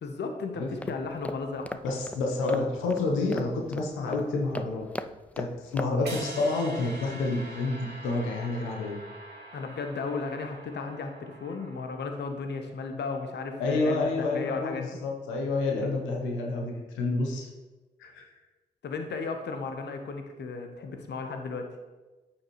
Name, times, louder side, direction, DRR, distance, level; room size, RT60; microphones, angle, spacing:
voice 1, 0.0-1.7 9.5-15.0 18.8-21.7, left 4 dB, 65° left, 5 dB, 1.1 m, -35 dB
sound 1, 0.6-6.4, left 1 dB, 5° left, 0.4 m, -40 dB
voice 2, 1.8-4.9 5.4-9.0 13.6-17.5 18.0-18.2, left 3 dB, 90° left, 0 dB, 1.0 m, -29 dB
sound 2, 6.0-12.2, right 2 dB, 60° right, 1.9 m, -44 dB
8.8 x 7.2 x 3.2 m, 1.2 s
hypercardioid pair, 40°, 19 cm